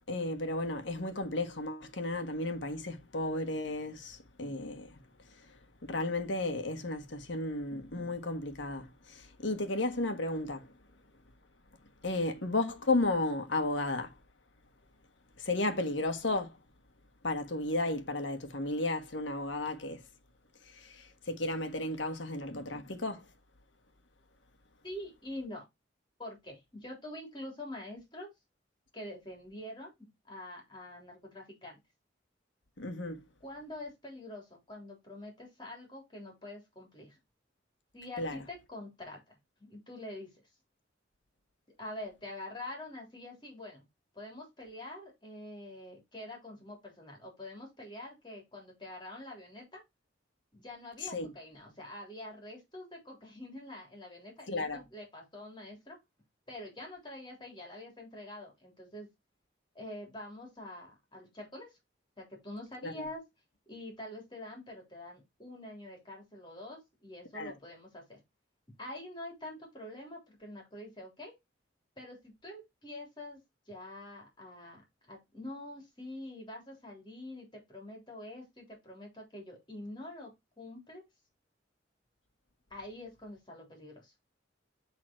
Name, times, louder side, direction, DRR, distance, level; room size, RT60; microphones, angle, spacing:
voice 1, 0.1-5.0 5.4-5.5 5.8-10.7 12.0-14.1 15.4-16.6 17.2-20.0 20.6-23.3 32.8-33.2 38.2-38.4 51.0-51.3 54.5-54.8 62.8-63.1 67.3-67.5, left 2 dB, 80° left, 1.5 m, -34 dB
voice 2, 24.8-25.6 26.2-28.3 28.9-31.8 33.4-37.2 37.9-40.3 41.8-43.9 44.1-49.8 50.5-56.0 56.5-59.1 59.7-61.7 62.2-63.3 63.7-68.2 68.8-71.3 72.0-73.4 73.7-74.8 75.1-80.3 80.6-81.0 82.7-84.1, left 1 dB, 25° left, 3.4 m, -46 dB
7.6 x 4.0 x 4.4 m
head